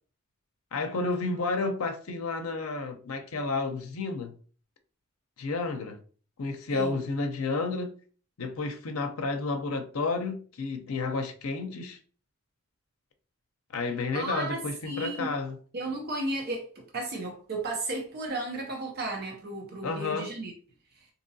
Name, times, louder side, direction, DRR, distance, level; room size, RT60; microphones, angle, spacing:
voice 1, 0.7-4.3 5.4-6.0 6.4-7.9 8.4-12.0 13.7-15.6 19.8-20.3, left 3 dB, 80° left, 0.6 m, -31 dB
voice 2, 6.7-7.0 14.1-15.3 15.7-20.5, right 2 dB, 50° right, 0.6 m, -34 dB
3.7 x 2.8 x 2.6 m
head